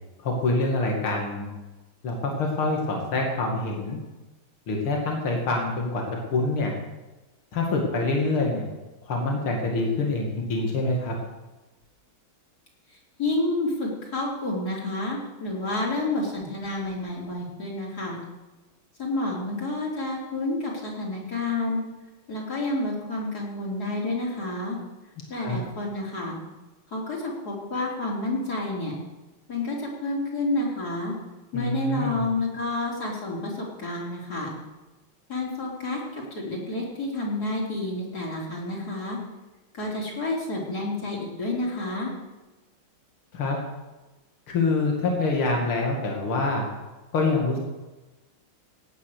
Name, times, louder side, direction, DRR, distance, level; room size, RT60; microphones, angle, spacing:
voice 1, 0.2-1.5 2.0-4.0 4.7-6.0 6.3-6.7 7.5-8.7 9.1-11.1 25.4-25.6 31.5-32.3 43.3-43.6 44.5-46.7 47.1-47.6, left 3 dB, 80° left, 0 dB, 3.0 m, -25 dB
voice 2, 13.2-18.2 19.0-21.8 22.3-24.8 25.3-26.4 26.9-28.9 29.5-31.1 31.5-34.5 35.3-39.2 39.7-42.1, left 2 dB, 45° left, -3 dB, 4.1 m, -29 dB
17.0 x 9.3 x 6.6 m, 1.1 s
omnidirectional pair, 2.3 m